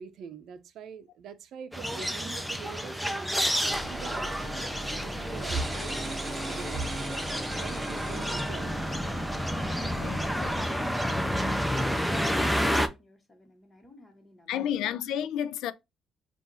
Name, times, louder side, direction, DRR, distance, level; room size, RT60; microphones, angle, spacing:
voice 1, 0.0-3.3 3.6-6.0 6.4-7.2 7.5-8.9, right 4 dB, 75° right, 0.6 m, -41 dB
sound 1, 1.7-12.9, equal, ahead, 0.6 m, -30 dB
sound 2, 3.7-10.6, right 1 dB, 20° right, 1.2 m, -37 dB
voice 2, 9.8-10.6 14.5-15.7, left 10 dB, 90° left, 0.3 m, -32 dB
voice 3, 10.4-14.8, left 2 dB, 25° left, 1.5 m, -53 dB
3.6 x 2.5 x 4.1 m
cardioid pair, 90°, 0 cm